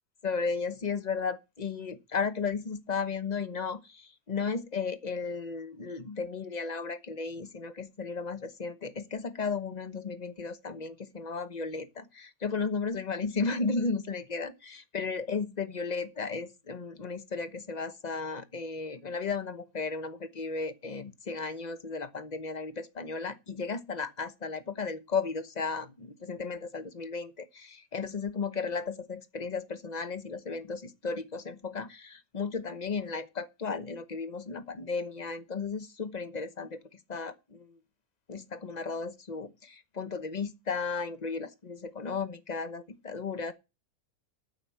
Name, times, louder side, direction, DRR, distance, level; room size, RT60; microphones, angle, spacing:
voice 1, 0.2-37.8 38.3-43.5, left 4 dB, 30° left, 1.0 m, -34 dB
9.3 x 7.1 x 7.7 m
omnidirectional pair, 1.6 m